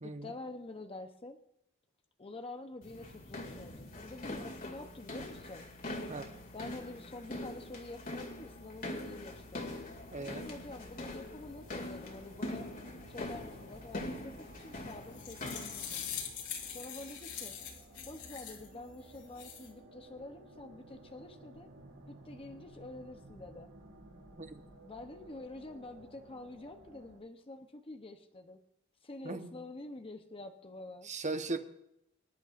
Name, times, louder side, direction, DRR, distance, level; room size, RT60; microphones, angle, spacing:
voice 1, 0.0-1.4 2.2-5.7 6.5-9.7 10.2-12.7 13.1-16.0 16.6-17.6 18.1-21.7 22.1-23.7 24.9-28.6 29.0-31.1, left 2 dB, 25° left, 5 dB, 0.8 m, -47 dB
sound 1, 2.8-16.3, left 1 dB, 40° left, 2.4 m, -43 dB
sound 2, 9.4-27.2, right 1 dB, 70° right, 2.7 m, -56 dB
voice 2, 10.1-10.4 24.4-24.6 29.2-29.5 31.0-31.6, right 3 dB, 35° right, 7 dB, 1.0 m, -38 dB
sound 3, 14.9-18.7 19.1-19.7, left 8 dB, 85° left, 2.9 m, -43 dB
25.0 x 11.0 x 2.5 m, 0.80 s
head